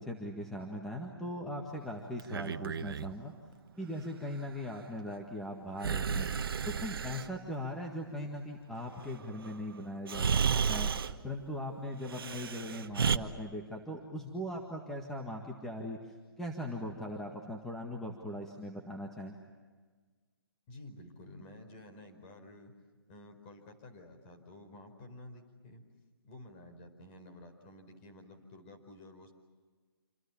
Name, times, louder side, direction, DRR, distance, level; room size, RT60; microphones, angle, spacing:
voice 1, 0.0-3.3 3.8-6.3 6.8-19.3, equal, 5° left, 0 dB, 1.8 m, -40 dB
Breathing, 2.2-3.1 5.8-7.3 9.4-9.5 10.1-11.2 12.1-13.2, right 6 dB, 65° right, 1.2 m, -32 dB
voice 2, 20.7-22.7 23.1-25.8 26.2-29.3, left 1 dB, 30° left, 6 dB, 4.7 m, -52 dB
27.5 x 26.5 x 7.2 m, 1.5 s
hypercardioid pair, 150°, 13 cm